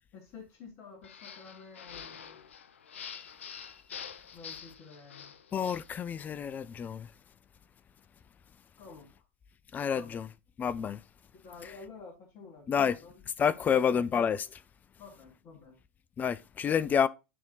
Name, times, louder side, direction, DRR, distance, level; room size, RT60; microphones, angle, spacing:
voice 1, 0.1-2.4 4.3-5.3 8.8-9.2 9.9-10.2 11.4-13.2 13.5-14.1 15.0-15.8, left 4 dB, 45° left, 2.2 m, -50 dB
sound 1, 1.0-5.9, left 7 dB, 80° left, 0.6 m, -46 dB
voice 2, 5.5-7.1 9.7-10.3 10.6-11.0 12.7-13.0 13.4-14.4 16.2-17.1, left 7 dB, 25° left, 0.4 m, -28 dB
10.0 x 3.6 x 3.8 m
hypercardioid pair, 90°, 7 cm